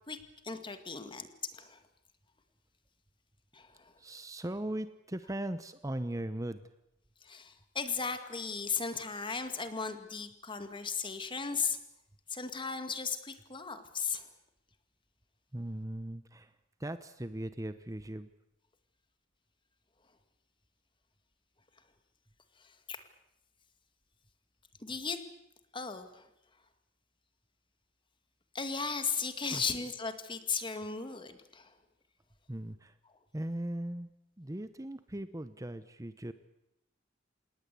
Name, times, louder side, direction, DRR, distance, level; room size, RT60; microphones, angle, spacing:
voice 1, 0.4-1.8 3.5-3.9 7.2-11.8 12.3-14.3 22.6-23.0 24.8-25.3 25.7-26.3 28.5-31.7, left 5 dB, 25° left, 9 dB, 2.1 m, -36 dB
voice 2, 4.0-6.7 15.5-18.3 29.5-29.6 32.5-33.0 33.3-34.1 34.4-36.3, right 1 dB, 20° right, 12 dB, 0.9 m, -39 dB
28.0 x 19.0 x 8.4 m, 0.84 s
head